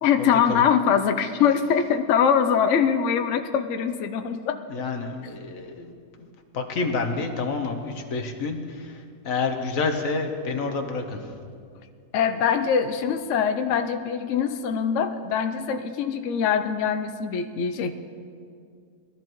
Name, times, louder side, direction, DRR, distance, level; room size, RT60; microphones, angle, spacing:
voice 1, 0.0-4.6 12.1-17.9, left 7 dB, 75° left, 8 dB, 0.6 m, -23 dB
voice 2, 4.7-5.9 6.5-8.9 9.2-11.2, left 4 dB, 50° left, 4 dB, 1.3 m, -28 dB
21.0 x 13.5 x 3.1 m, 2.3 s
omnidirectional pair, 2.0 m